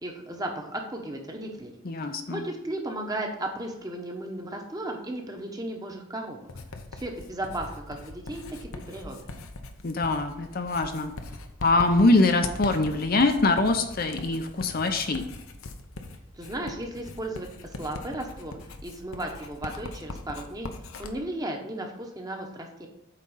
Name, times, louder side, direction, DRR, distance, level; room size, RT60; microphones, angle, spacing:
voice 1, 0.0-1.7 2.0-6.5 6.9-9.2 16.3-20.7 21.0-22.9, right 1 dB, 15° right, 2 dB, 1.1 m, -35 dB
voice 2, 1.8-2.5 9.8-11.1 11.6-15.2, left 2 dB, 45° left, 6 dB, 0.6 m, -23 dB
Writing, 6.5-21.1, left 2 dB, 80° left, 0.8 m, -41 dB
8.4 x 3.8 x 5.5 m, 0.83 s
head